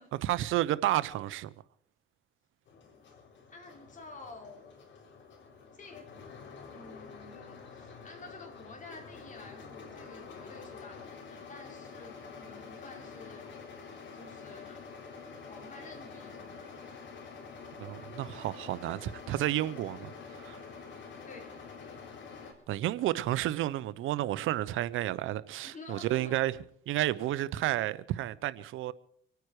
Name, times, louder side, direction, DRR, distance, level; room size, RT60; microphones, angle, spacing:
voice 1, 0.2-1.5 17.8-20.6 22.7-26.6 26.9-28.9, right 14 dB, 85° right, 0.8 m, -31 dB
sound 1, 2.7-22.5, left 5 dB, 70° left, 4.0 m, -47 dB
voice 2, 3.5-4.7 5.7-6.1 6.7-13.5 14.1-14.9 15.5-17.1 21.2-21.5 25.6-26.4, left 3 dB, 40° left, 4.9 m, -50 dB
25.5 x 9.4 x 4.8 m
cardioid pair, 90°, 20 cm